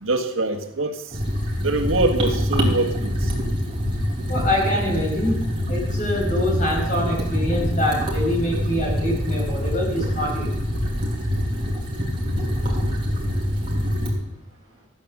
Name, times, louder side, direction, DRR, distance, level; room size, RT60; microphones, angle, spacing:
voice 1, 0.0-1.1 1.6-3.3, right 2 dB, 85° right, 5 dB, 1.6 m, -24 dB
sound 1, 1.1-14.1, equal, 25° right, 3.2 m, -25 dB
voice 2, 4.3-5.4 5.7-10.5, left 1 dB, 40° left, -1 dB, 5.1 m, -25 dB
14.0 x 8.9 x 6.7 m, 0.81 s
head